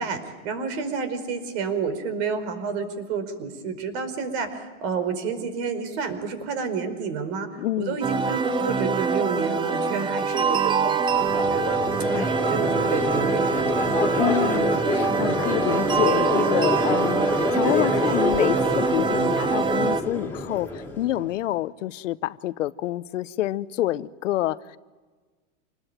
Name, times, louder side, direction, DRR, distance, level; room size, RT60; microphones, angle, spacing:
voice 1, 0.0-13.5, right 5 dB, 60° right, 10 dB, 5.0 m, -30 dB
voice 2, 7.6-8.0 14.2-24.8, left 14 dB, 85° left, 16 dB, 1.0 m, -27 dB
sound 1, 8.0-20.0, right 5 dB, 15° right, 0.7 m, -24 dB
Crowd, 11.1-21.3, left 2 dB, 5° left, 3.6 m, -27 dB
27.0 x 20.5 x 9.0 m, 1.4 s
supercardioid pair, 135°, 37 cm